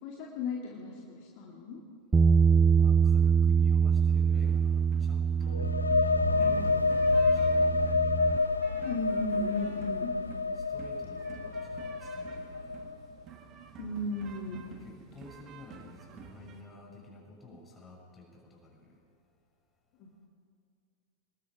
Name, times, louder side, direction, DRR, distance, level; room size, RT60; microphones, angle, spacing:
voice 1, 0.0-1.8 6.2-6.7 8.8-10.1 13.8-14.6 20.0-20.1, left 2 dB, 45° left, -2 dB, 2.6 m, -36 dB
Bass guitar, 2.1-8.4, right 6 dB, 15° right, 0.5 m, -25 dB
voice 2, 2.7-5.8 6.3-8.0 10.6-13.0 14.5-19.0, left 2 dB, 15° left, -2 dB, 7.1 m, -51 dB
sound 1, 4.4-16.6, right 7 dB, 35° right, 2.3 m, -51 dB
sound 2, 5.5-13.1, left 3 dB, 80° left, 0.5 m, -28 dB
26.5 x 20.5 x 5.1 m, 2.2 s
figure-of-eight pair, 90°, 0 cm